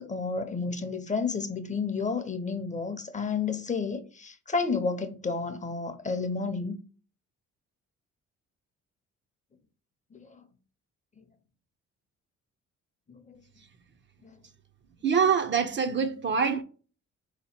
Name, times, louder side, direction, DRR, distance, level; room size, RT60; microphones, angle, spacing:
voice 1, 0.0-6.8 10.1-10.3 13.3-13.4, left 4 dB, 25° left, 0.6 m, -31 dB
voice 2, 15.0-16.6, right 6 dB, 40° right, 0.5 m, -25 dB
3.8 x 2.9 x 4.2 m
cardioid pair, 90°, 30 cm